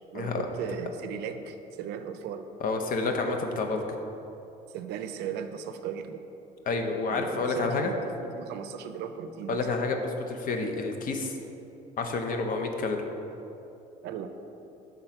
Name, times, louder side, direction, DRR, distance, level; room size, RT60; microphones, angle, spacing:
voice 1, 0.1-2.5 4.7-6.3 7.1-9.7 14.0-14.3, right 7 dB, 80° right, 8 dB, 0.4 m, -37 dB
voice 2, 2.6-3.8 6.7-7.9 9.5-11.4 12.0-13.0, left 3 dB, 55° left, 4 dB, 0.7 m, -29 dB
5.5 x 3.6 x 5.8 m, 3.0 s
cardioid pair, 110°, 17 cm